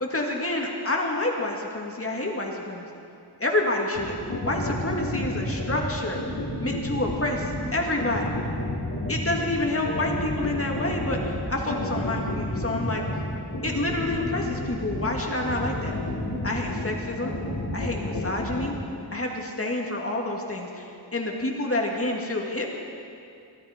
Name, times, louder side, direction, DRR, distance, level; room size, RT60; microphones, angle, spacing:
voice 1, 0.0-3.0 3.4-4.2 4.4-6.2 6.6-8.3 9.1-11.2 11.5-13.0 13.6-16.0 16.4-17.3 17.7-18.7 19.1-20.9 21.1-22.7, left 2 dB, 30° left, 0 dB, 1.9 m, -28 dB
sound 1, 4.0-18.7, left 1 dB, 90° left, 4.0 m, -30 dB
23.5 x 10.5 x 5.0 m, 2.5 s
wide cardioid pair, 85°, 42 cm